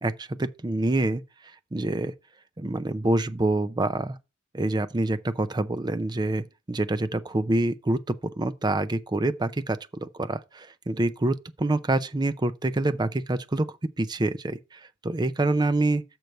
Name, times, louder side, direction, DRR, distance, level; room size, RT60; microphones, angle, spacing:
voice 1, 0.0-1.2 1.7-2.1 2.6-4.2 4.5-16.0, right 2 dB, 20° right, 0.5 m, -26 dB
6.7 x 4.5 x 6.5 m
head